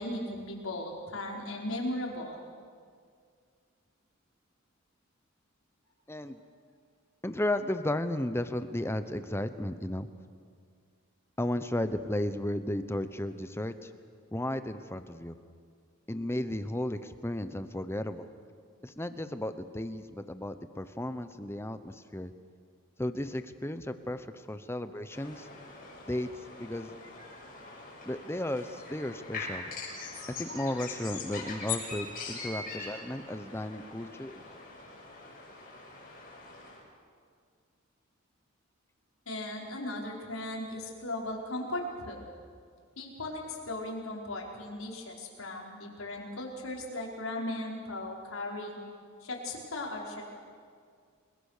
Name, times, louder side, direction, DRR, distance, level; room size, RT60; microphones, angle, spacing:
voice 1, 0.0-2.4 39.3-42.2 43.0-48.8 49.2-50.2, left 1 dB, 85° left, -1 dB, 4.9 m, -37 dB
voice 2, 6.1-6.4 7.2-10.1 11.4-13.9 14.3-15.4 16.1-18.3 18.8-22.3 23.0-25.5 26.1-26.3 26.6-26.9 28.0-29.7 30.4-34.6, left 1 dB, 10° left, 10 dB, 0.9 m, -34 dB
sound 1, 25.1-36.8, left 4 dB, 45° left, 7.2 m, -42 dB
29.5 x 21.0 x 6.7 m, 2.1 s
head